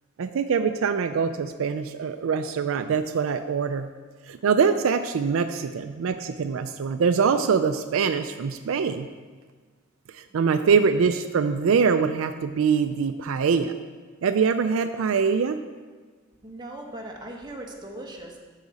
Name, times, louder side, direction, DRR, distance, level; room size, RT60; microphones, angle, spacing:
voice 1, 0.2-3.9 4.3-9.1 10.1-13.7 14.2-15.6, right 6 dB, 75° right, 9 dB, 0.4 m, -23 dB
voice 2, 16.4-18.4, right 1 dB, 20° right, -1 dB, 1.2 m, -39 dB
13.0 x 4.9 x 4.1 m, 1.4 s
head